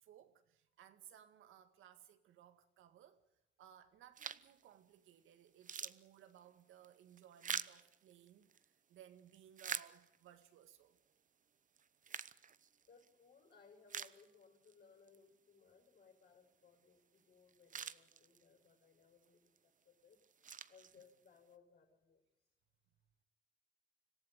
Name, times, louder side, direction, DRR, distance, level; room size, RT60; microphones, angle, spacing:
voice 1, 0.0-3.2 3.6-11.0, right 10 dB, 85° right, 2.0 m, -62 dB
sound 1, 4.2-4.6 5.1-5.2 5.5-8.7 9.2-10.4 11.0-11.1 11.8-13.1 13.5-13.6 13.9-14.7 15.1-15.2 17.2-17.3 17.5-18.6 19.2-19.6 20.1-21.4, right 7 dB, 40° right, 0.9 m, -46 dB
voice 2, 12.9-20.2 20.7-22.2, left 5 dB, 55° left, 7.4 m, -65 dB
26.0 x 15.0 x 9.3 m
cardioid pair, 90°, 20 cm